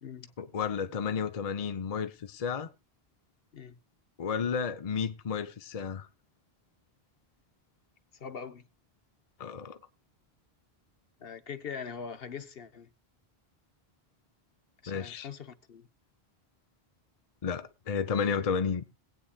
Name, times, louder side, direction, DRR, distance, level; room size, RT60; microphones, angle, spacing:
voice 1, 0.4-2.7 4.2-6.1 9.4-9.8 14.9-15.3 17.4-18.8, left 6 dB, 40° left, 0.7 m, -32 dB
voice 2, 8.2-8.6 11.2-12.9 14.8-15.9, left 6 dB, 65° left, 1.1 m, -42 dB
22.0 x 8.6 x 2.3 m
omnidirectional pair, 1.0 m